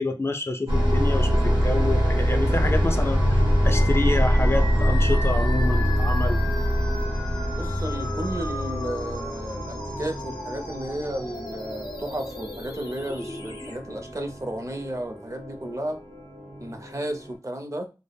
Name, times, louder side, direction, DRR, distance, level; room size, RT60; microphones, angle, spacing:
voice 1, 0.0-3.4 3.6-6.4, left 2 dB, 35° left, 0.3 m, -28 dB
sound 1, 0.7-17.3, equal, 90° right, 0.8 m, -25 dB
sound 2, 3.7-13.7, left 2 dB, 80° left, 0.6 m, -37 dB
voice 2, 7.5-16.0 16.6-17.9, right 1 dB, 40° right, 0.5 m, -33 dB
2.1 x 2.0 x 3.3 m
wide cardioid pair, 45°, 8 cm